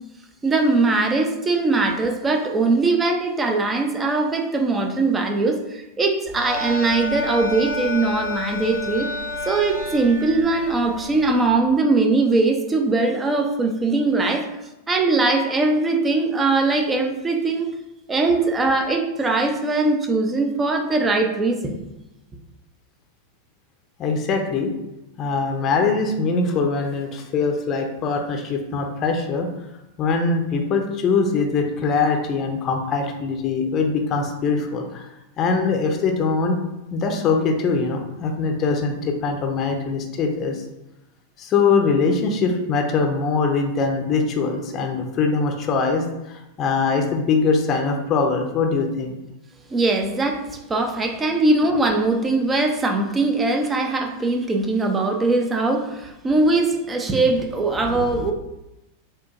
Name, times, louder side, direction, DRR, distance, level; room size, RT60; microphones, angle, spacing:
voice 1, 0.4-9.1 9.5-14.5 14.9-17.7 18.1-21.7 49.7-58.3, right 3 dB, 15° right, 4 dB, 0.6 m, -21 dB
sound 1, 6.3-11.5, left 1 dB, 45° right, 1.6 m, -30 dB
voice 2, 24.0-24.7 25.2-29.5 30.0-35.1 35.4-36.6 36.9-40.6 41.4-49.1, left 4 dB, 30° left, 3 dB, 0.7 m, -22 dB
7.2 x 2.6 x 2.5 m, 0.92 s
figure-of-eight pair, 90°, 0 cm